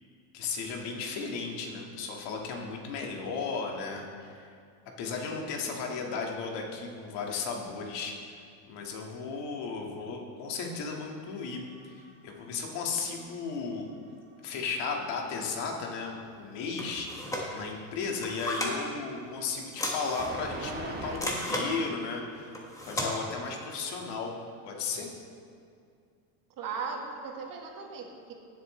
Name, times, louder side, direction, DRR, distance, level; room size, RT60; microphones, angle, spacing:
voice 1, 0.3-4.5 5.0-8.4 8.7-11.7 11.9-13.9 14.4-22.6 22.9-24.4 24.7-25.1, left 4 dB, 60° left, 0 dB, 2.0 m, -35 dB
sound 1, 11.1-13.8 14.1-15.2 20.2-21.2, right 3 dB, 20° right, 1.4 m, -41 dB
sound 2, 16.8-17.5 18.1-18.8 19.7-20.4 21.1-21.7 22.5-23.1, left 1 dB, 5° left, 1.2 m, -34 dB
voice 2, 26.6-28.3, right 5 dB, 45° right, 1 dB, 1.7 m, -37 dB
17.5 x 7.7 x 3.3 m, 2.3 s
cardioid pair, 140°, 48 cm